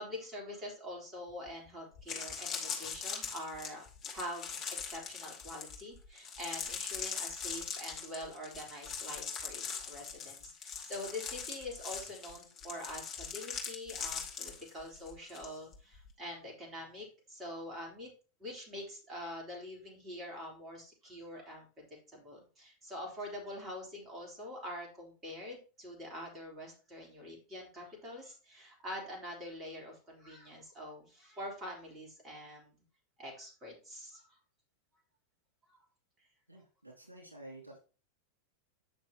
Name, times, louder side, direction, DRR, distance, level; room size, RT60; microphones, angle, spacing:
voice 1, 0.0-3.8 4.1-18.1 18.4-32.7 33.2-34.3 35.7-35.8, left 1 dB, 25° right, -1 dB, 3.6 m, -45 dB
sound 1, 1.5-1.6 1.9-15.5 15.7-16.1, left 6 dB, 25° left, 2.1 m, -41 dB
voice 2, 36.5-37.8, right 1 dB, 85° right, -3 dB, 2.6 m, -51 dB
9.0 x 6.3 x 2.9 m, 0.37 s
figure-of-eight pair, 90°, 0 cm